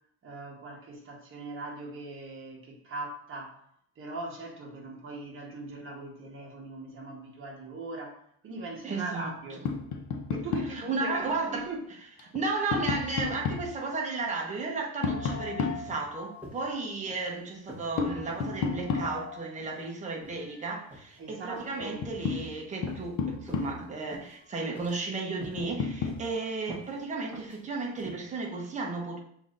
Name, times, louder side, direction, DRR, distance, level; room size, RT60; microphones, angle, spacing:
voice 1, 0.2-3.6 4.0-9.6 10.3-11.9 21.2-22.0, right 2 dB, 35° right, 0 dB, 1.1 m, -40 dB
voice 2, 8.8-9.6 10.7-11.7 12.3-29.2, right 3 dB, 20° right, -1 dB, 0.8 m, -34 dB
Tap, 9.6-10.8 12.2-13.7 15.0-16.5 18.0-19.5 21.3-21.4 21.8-24.0 25.6-26.2, left 5 dB, 55° left, 0.6 m, -32 dB
sound 1, 16.4-16.8 17.1-17.3 17.7-17.9 18.3-18.5 18.9-19.1 19.6-19.8 20.2-20.4 20.9-21.2 21.5-21.8 22.2-22.5 22.9-23.1 23.5-23.7 24.1-24.4 24.7-25.1 25.4-25.7 26.0-26.3 26.7-26.9 27.3-27.6 28.0-28.1, equal, 5° right, 1.2 m, -46 dB
7.0 x 2.7 x 2.5 m, 0.67 s
cardioid pair, 140°, 35 cm